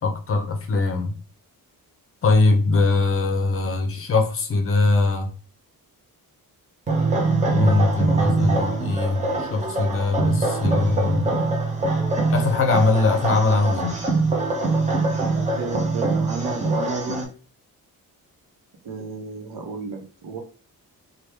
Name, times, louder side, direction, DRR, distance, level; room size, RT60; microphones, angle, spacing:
voice 1, 0.0-1.1 2.2-5.3 7.5-11.2 12.3-14.0, left 3 dB, 35° left, 6 dB, 0.6 m, -21 dB
sound 1, 6.9-17.2, right 3 dB, 20° right, 0.6 m, -23 dB
voice 2, 15.5-17.3 18.8-20.4, right 3 dB, 85° right, 3 dB, 0.9 m, -32 dB
3.2 x 2.2 x 3.3 m, 0.37 s
wide cardioid pair, 170°, 37 cm